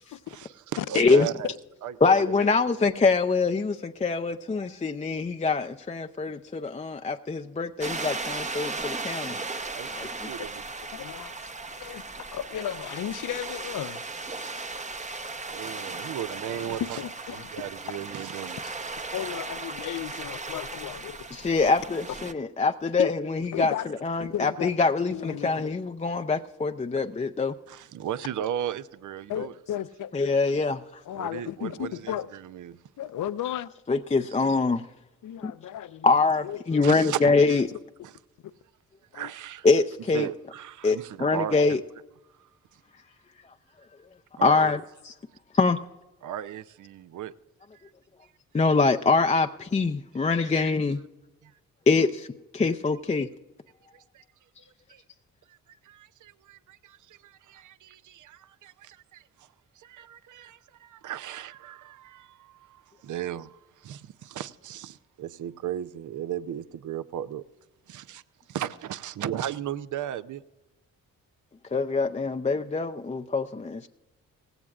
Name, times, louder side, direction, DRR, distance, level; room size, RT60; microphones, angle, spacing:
voice 1, 0.3-1.5 1.8-2.5 9.6-10.6 15.5-17.0 17.3-18.8 27.7-29.5 31.2-32.8 36.8-37.6 38.0-38.1 39.1-39.7 40.1-41.8 42.4-42.8 44.4-44.7 46.2-47.3 47.7-47.9 50.4-50.6 51.4-51.5 53.9-54.2 54.9-55.0 55.5-55.6 55.8-59.5 59.8-67.4 67.9-68.2 68.5-70.4, right 10 dB, 60° right, 0.6 m, -36 dB
voice 2, 1.0-1.3 2.0-9.4 9.9-10.1 21.3-23.7 24.0-27.5 30.1-30.8 33.9-34.8 35.4-35.5 36.0-37.6 39.6-40.3 40.8-41.8 44.4-44.8 45.0-45.1 45.5-45.8 48.5-51.0 51.9-52.3 52.5-53.3 71.7-73.9, left 4 dB, 20° left, 0.6 m, -24 dB
sound 1, 7.8-22.3, right 3 dB, 20° right, 0.8 m, -36 dB
voice 3, 10.9-11.5 11.8-14.0 17.0-17.5 19.1-21.5 23.0-23.1 23.5-23.9 24.2-24.7 25.1-25.8 29.3-30.1 31.1-32.3 33.0-33.7 35.2-36.1 36.4-36.9 37.7-37.8 39.1-39.3, left 11 dB, 65° left, 0.6 m, -34 dB
17.5 x 16.0 x 2.4 m
supercardioid pair, 55°, 34 cm